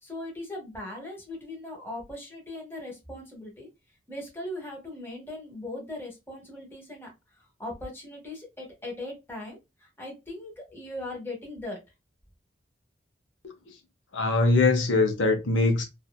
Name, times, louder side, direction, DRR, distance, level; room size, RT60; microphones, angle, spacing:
voice 1, 0.0-3.7 4.1-7.1 7.4-11.8, left 1 dB, 10° left, 1.0 m, -39 dB
voice 2, 14.1-15.8, left 3 dB, 80° left, 0.7 m, -22 dB
2.8 x 2.3 x 2.2 m
head